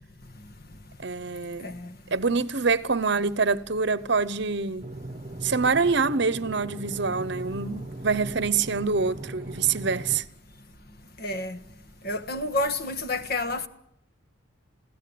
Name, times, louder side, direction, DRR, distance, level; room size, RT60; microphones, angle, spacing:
voice 1, 1.0-1.7 2.1-4.8 5.4-10.2, right 4 dB, 55° right, 0.9 m, -25 dB
voice 2, 1.6-2.0 11.2-11.6 12.0-13.7, left 2 dB, 50° left, 1.4 m, -30 dB
sound 1, 4.8-10.2, right 1 dB, 30° right, 1.0 m, -39 dB
28.5 x 16.5 x 8.6 m
head